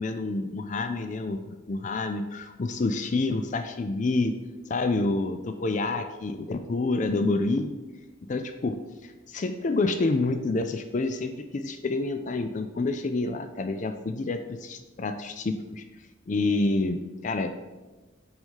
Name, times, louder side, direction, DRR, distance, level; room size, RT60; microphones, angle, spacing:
voice 1, 0.0-1.4 1.7-4.4 4.7-7.8 8.3-15.8 16.3-17.5, left 3 dB, 40° left, 8 dB, 0.4 m, -28 dB
6.3 x 4.9 x 5.4 m, 1.2 s
head